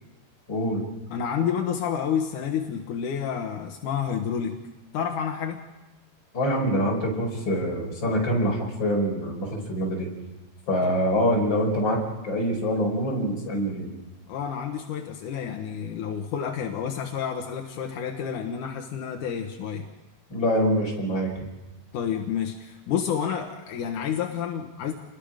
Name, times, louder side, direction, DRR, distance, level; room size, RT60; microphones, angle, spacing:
voice 1, 0.5-0.9 6.3-10.1 10.7-13.9 20.3-21.3, equal, 25° left, -1 dB, 5.5 m, -25 dB
voice 2, 1.1-4.6 4.9-5.6 10.8-10.9 14.3-19.9 21.9-24.9, left 8 dB, 70° left, 3 dB, 2.0 m, -29 dB
29.0 x 21.0 x 5.1 m, 1.1 s
omnidirectional pair, 5.3 m